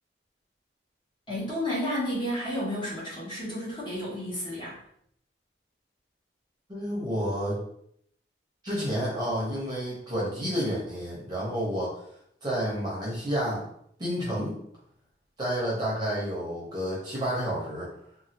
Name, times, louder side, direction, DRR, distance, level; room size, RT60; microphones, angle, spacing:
voice 1, 1.3-4.8, equal, 25° left, -6 dB, 1.0 m, -31 dB
voice 2, 6.7-7.6 8.6-12.0 12.4-13.6 14.0-14.6 15.4-17.9, equal, 25° right, -6 dB, 0.8 m, -30 dB
3.1 x 2.3 x 2.8 m, 0.69 s
head